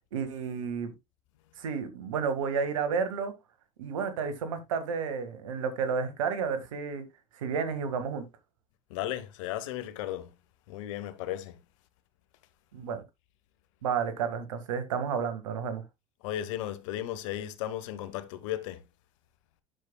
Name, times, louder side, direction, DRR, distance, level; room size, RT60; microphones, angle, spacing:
voice 1, 0.1-0.9 1.6-3.3 3.8-7.1 7.4-8.2 12.7-13.0 13.8-15.8, right 6 dB, 85° right, 1.7 m, -31 dB
voice 2, 8.9-10.3 10.7-11.6 16.2-18.8, left 12 dB, 75° left, 1.1 m, -35 dB
11.0 x 7.0 x 2.2 m
hypercardioid pair, 80°, 16 cm